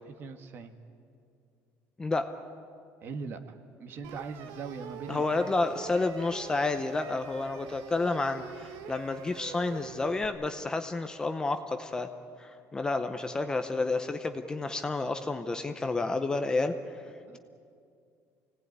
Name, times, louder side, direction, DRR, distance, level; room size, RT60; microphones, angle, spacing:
voice 1, 0.1-0.7 3.0-5.5 17.3-17.4, right 5 dB, 40° right, 8 dB, 1.5 m, -41 dB
voice 2, 2.0-2.3 5.1-12.1 12.4-16.7, left 3 dB, 15° left, 8 dB, 0.7 m, -30 dB
sound 1, 4.0-10.3, right 8 dB, 80° right, 1.5 m, -45 dB
25.5 x 18.0 x 9.5 m, 2.4 s
cardioid pair, 170°, 6 cm